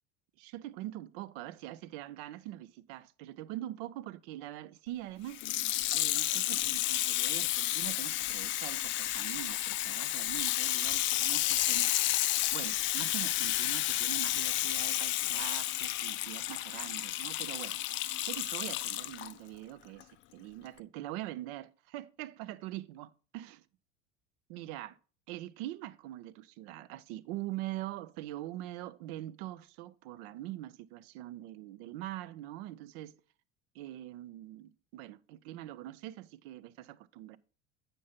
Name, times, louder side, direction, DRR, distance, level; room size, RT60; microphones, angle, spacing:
voice 1, 0.4-5.4 5.9-12.1 12.5-23.7 24.5-25.0 25.3-33.1 33.7-37.4, right 14 dB, 55° right, 0.6 m, -43 dB
Water tap faucet / Sink (filling or washing), 5.3-19.3 20.0-20.1, left 15 dB, 35° left, 0.4 m, -31 dB
8.4 x 5.3 x 4.1 m
hypercardioid pair, 75°, 38 cm